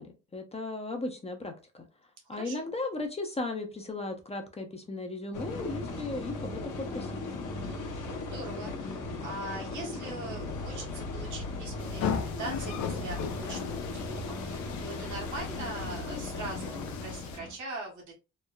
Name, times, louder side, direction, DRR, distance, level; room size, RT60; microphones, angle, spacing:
voice 1, 0.0-1.9 2.3-7.2, left 2 dB, 20° left, 4 dB, 0.5 m, -36 dB
voice 2, 2.3-2.7 7.6-18.1, right 2 dB, 75° right, 0 dB, 1.2 m, -42 dB
sound 1, 5.3-17.5, left 2 dB, 85° left, 0.9 m, -37 dB
sound 2, 11.8-17.4, left 7 dB, 65° left, 0.5 m, -37 dB
3.0 x 2.0 x 2.3 m, 0.29 s
cardioid pair, 90°, 30 cm